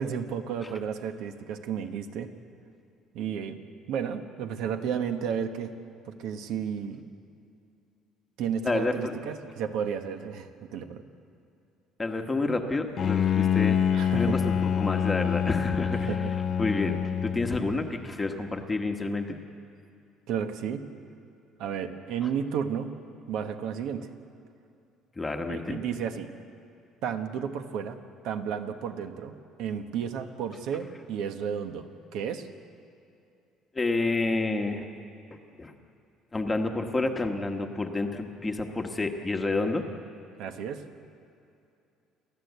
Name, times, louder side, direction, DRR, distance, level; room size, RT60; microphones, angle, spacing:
voice 1, 0.0-2.3 3.1-3.6 3.9-5.8 6.1-7.0 8.4-11.0 13.9-14.5 16.1-16.3 20.3-20.8 21.6-22.9 23.3-24.1 25.5-26.3 27.0-28.0 28.2-31.8 32.1-32.5 40.4-40.8, right 7 dB, 65° right, 7 dB, 1.4 m, -32 dB
voice 2, 8.6-9.1 12.0-13.8 14.1-16.2 16.6-19.3 25.1-25.8 33.7-34.8 35.3-35.7 36.3-39.9, left 3 dB, 10° left, 4 dB, 1.2 m, -29 dB
Bowed string instrument, 13.0-17.9, left 8 dB, 35° left, 0.6 m, -26 dB
29.5 x 13.5 x 8.2 m, 2.6 s
cardioid pair, 165°, 0 cm